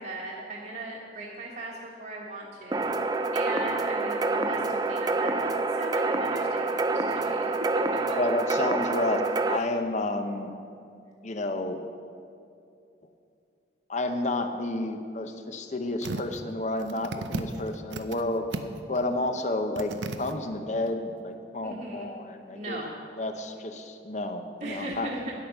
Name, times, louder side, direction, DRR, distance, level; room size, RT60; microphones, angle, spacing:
voice 1, 0.0-1.7 2.0-8.2 9.5-9.6 21.6-22.1 22.5-22.9 24.6-25.3, right 1 dB, 50° right, -5 dB, 1.4 m, -38 dB
sound 1, 2.7-9.6, right 3 dB, 20° right, 0.4 m, -27 dB
voice 2, 8.2-9.2 9.5-10.5 11.2-11.8 13.9-18.5 18.9-22.8 23.2-25.1, left 2 dB, 40° left, 7 dB, 0.7 m, -30 dB
sound 2, 16.0-16.4 16.8-18.2 18.5-19.0 19.3-19.4 19.8-20.3 20.9-21.0, right 3 dB, 80° right, 0.6 m, -35 dB
10.5 x 8.5 x 6.0 m, 2.5 s
head